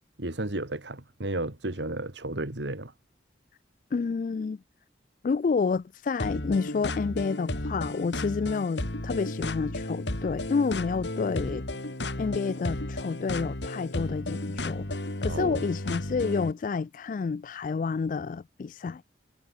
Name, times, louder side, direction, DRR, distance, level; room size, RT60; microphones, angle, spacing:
voice 1, 0.2-2.9 15.3-15.6, right 2 dB, 85° right, 2.4 m, -33 dB
voice 2, 3.9-4.6 5.2-11.6 12.2-19.0, left 5 dB, 45° left, 0.3 m, -29 dB
sound 1, 6.2-16.5, left 1 dB, 85° left, 2.7 m, -33 dB
head